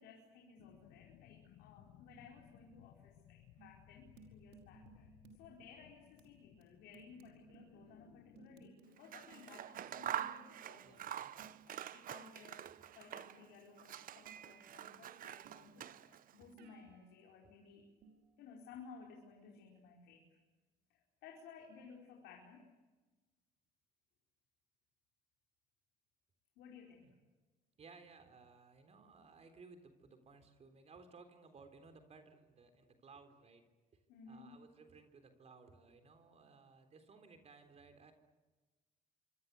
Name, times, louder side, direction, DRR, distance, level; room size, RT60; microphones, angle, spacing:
voice 1, 0.0-11.3 11.7-17.9 18.4-20.3 20.9-22.6 26.6-27.2 34.1-34.6, left 5 dB, 90° left, 0 dB, 4.9 m, -58 dB
sound 1, 0.6-8.7, left 13 dB, 75° left, 1.1 m, -63 dB
sound 2, 3.6-5.5 6.2-6.3 6.6-6.7 6.9-7.9 8.4-10.5 11.4-11.6 14.3-14.9 15.4-16.0 16.6-17.1 18.0-18.4, right 6 dB, 85° right, 5.3 m, -61 dB
Scissors, 9.0-13.5 13.8-16.3, right 11 dB, 55° right, 1.0 m, -46 dB
voice 2, 10.8-11.5 27.0-27.1 27.8-33.6 33.9-34.0 34.3-38.1, right 4 dB, 40° right, 8 dB, 3.7 m, -60 dB
27.0 x 25.0 x 8.2 m, 1.2 s
cardioid pair, 110°, 17 cm